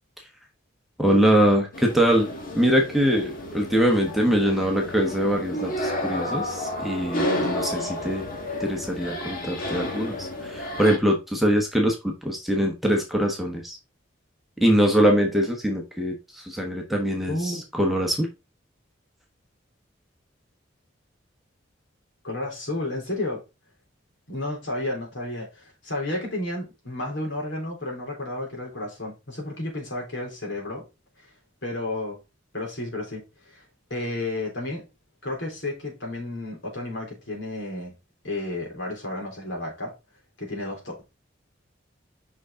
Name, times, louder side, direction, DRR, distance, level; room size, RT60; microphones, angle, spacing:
voice 1, 1.0-2.3 2.5-8.3 8.6-13.8 14.6-18.3, equal, ahead, 1.2 m, -23 dB
sound 1, 1.7-11.0, left 1 dB, 45° left, 1.7 m, -31 dB
voice 2, 17.3-17.6 22.2-23.4 24.3-30.8 31.6-32.2 32.5-33.6 33.9-34.8 35.2-37.9 38.2-39.9 40.4-41.0, left 2 dB, 65° left, 3.8 m, -32 dB
6.3 x 5.7 x 3.7 m
head